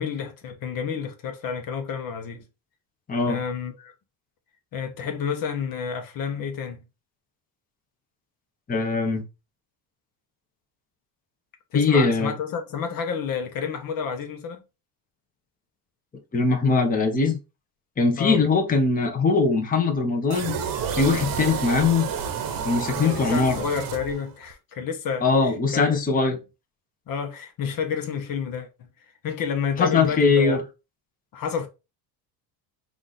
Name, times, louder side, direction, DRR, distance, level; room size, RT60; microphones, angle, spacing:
voice 1, 0.0-2.4 3.3-3.9 4.7-6.8 11.7-14.6 18.2-18.4 23.0-25.9 27.1-28.7 29.2-30.6 31.3-31.7, left 6 dB, 50° left, 1.0 m, -30 dB
voice 2, 8.7-9.2 11.7-12.3 16.3-17.4 18.0-20.6 21.0-22.1 22.6-23.6 25.2-26.4 29.8-30.6, left 4 dB, 20° left, 0.9 m, -21 dB
sound 1, 20.3-24.5, right 7 dB, 50° right, 1.0 m, -30 dB
4.8 x 2.6 x 4.0 m
cardioid pair, 120°, 45 cm